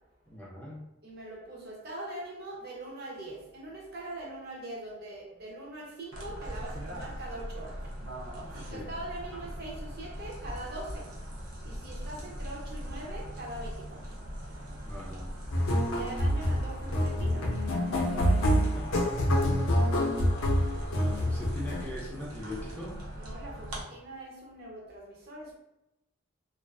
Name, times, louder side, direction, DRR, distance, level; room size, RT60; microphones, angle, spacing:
voice 1, 0.3-0.8 8.7-8.9 14.8-15.3 18.7-18.9 20.5-23.0, left 1 dB, 10° left, -5 dB, 0.4 m, -41 dB
voice 2, 1.0-7.8 8.5-11.1 11.6-14.1 15.9-17.5 23.2-25.5, right 1 dB, 45° right, -2 dB, 0.6 m, -42 dB
sound 1, 6.1-23.8, equal, 85° right, 0.6 m, -41 dB
sound 2, 15.5-21.8, equal, 65° left, 0.4 m, -27 dB
2.4 x 2.3 x 2.3 m, 0.90 s
head